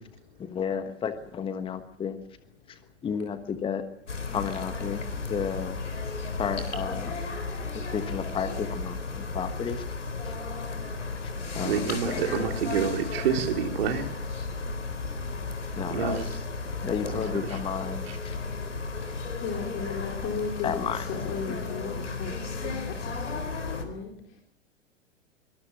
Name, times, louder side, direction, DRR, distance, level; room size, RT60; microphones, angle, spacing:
voice 1, 0.4-2.2 2.7-3.8 4.3-5.0 5.3-5.8 6.4-7.2 7.7-9.8 10.2-10.3 11.5-12.2 15.8-16.2 16.8-18.3 20.6-21.0, left 7 dB, 15° left, 10 dB, 1.3 m, -32 dB
sound 1, 4.1-23.8, left 3 dB, 75° left, 4.2 m, -34 dB
voice 2, 11.6-14.0 15.9-16.3 17.1-17.6 18.1-18.2, right 7 dB, 50° right, 5 dB, 3.5 m, -28 dB
voice 3, 19.0-24.1, left 5 dB, 30° left, 1 dB, 3.9 m, -36 dB
24.0 x 20.5 x 7.3 m, 0.71 s
figure-of-eight pair, 105°, 37 cm